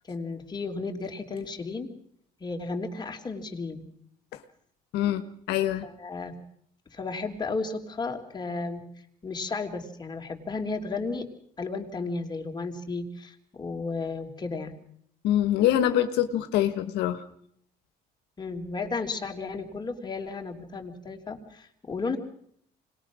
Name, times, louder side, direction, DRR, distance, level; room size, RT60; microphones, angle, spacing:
voice 1, 0.1-1.9 2.4-3.8 5.8-6.3 6.9-8.8 9.2-11.3 11.6-14.7 18.4-22.2, left 3 dB, 25° left, 3 dB, 3.2 m, -33 dB
voice 2, 4.9-5.9 15.2-17.2, left 11 dB, 85° left, 9 dB, 1.3 m, -24 dB
25.5 x 20.0 x 6.2 m, 0.68 s
cardioid pair, 110°, 17 cm